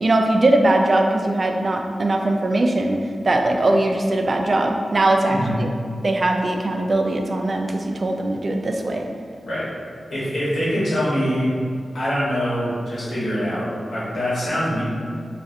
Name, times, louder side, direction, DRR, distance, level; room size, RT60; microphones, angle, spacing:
voice 1, 0.0-3.0 3.2-5.7 6.0-9.1, right 2 dB, 50° right, 3 dB, 0.4 m, -20 dB
voice 2, 10.1-11.5 11.9-14.8, equal, 85° left, -10 dB, 1.4 m, -24 dB
5.3 x 2.4 x 2.6 m, 2.2 s
cardioid pair, 65°, 0 cm